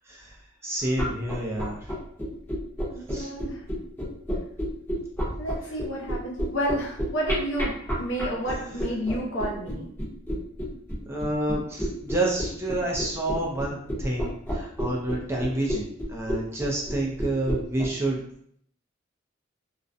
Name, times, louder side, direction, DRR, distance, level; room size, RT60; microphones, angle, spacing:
voice 1, 0.6-1.8 3.1-3.3 11.1-18.2, right 1 dB, 15° right, -2 dB, 0.4 m, -29 dB
sound 1, 0.9-17.9, equal, 10° left, 0.7 m, -30 dB
voice 2, 2.9-3.6 5.4-9.9, equal, 75° left, -3 dB, 0.7 m, -31 dB
2.4 x 2.1 x 2.5 m, 0.66 s
head